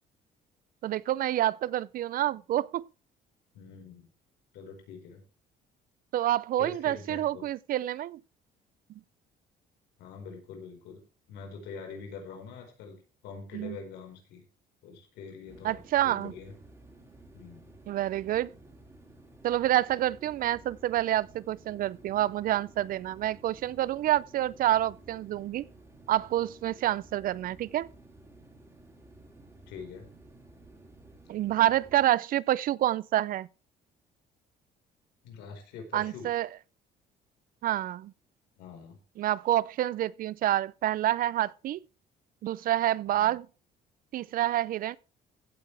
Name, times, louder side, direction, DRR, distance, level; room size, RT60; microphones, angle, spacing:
voice 1, 0.8-2.9 6.1-8.2 13.5-13.8 15.6-16.3 17.9-18.5 19.4-25.7 26.1-27.9 31.3-33.5 35.9-36.5 37.6-38.1 39.2-41.8 42.4-43.5 44.1-45.0, right 13 dB, 60° right, 0.5 m, -28 dB
voice 2, 3.5-4.1 4.5-5.2 6.6-7.4 10.0-11.0 11.3-13.0 13.2-14.4 14.8-16.5 17.3-17.8 29.7-30.0 35.2-36.3 38.6-39.0 43.1-43.3, left 5 dB, 90° left, 4.6 m, -44 dB
sound 1, 15.5-32.1, right 2 dB, 15° right, 4.5 m, -54 dB
15.5 x 8.7 x 3.3 m
cardioid pair, 110°, 17 cm